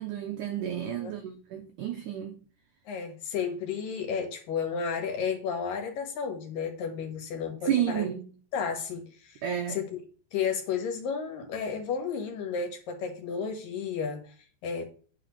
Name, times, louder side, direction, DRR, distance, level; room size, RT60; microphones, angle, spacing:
voice 1, 0.0-2.4 7.6-8.3 9.4-9.8, right 10 dB, 85° right, 1.7 m, -31 dB
voice 2, 2.9-8.1 8.5-9.4 9.7-10.0 10.3-14.3 14.6-14.8, left 6 dB, 60° left, 3.1 m, -32 dB
9.2 x 4.4 x 6.6 m
omnidirectional pair, 4.9 m